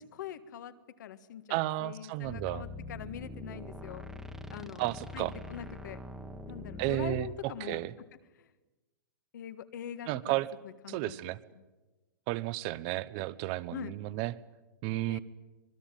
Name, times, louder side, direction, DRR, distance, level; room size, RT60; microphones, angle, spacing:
voice 1, 0.0-4.0 4.5-6.0 6.5-7.8 8.4-8.5 9.3-10.1 10.6-11.1 13.7-13.9 15.1-15.2, left 9 dB, 60° left, 11 dB, 1.7 m, -43 dB
voice 2, 1.5-2.6 4.8-5.3 6.8-7.9 10.1-10.5 10.9-11.4 12.3-14.3 14.8-15.2, right 17 dB, 30° right, 18 dB, 0.8 m, -33 dB
sound 1, 2.2-7.3, left 2 dB, 5° right, 1.4 m, -43 dB
25.0 x 21.0 x 9.1 m, 1.2 s
hypercardioid pair, 170°, 11 cm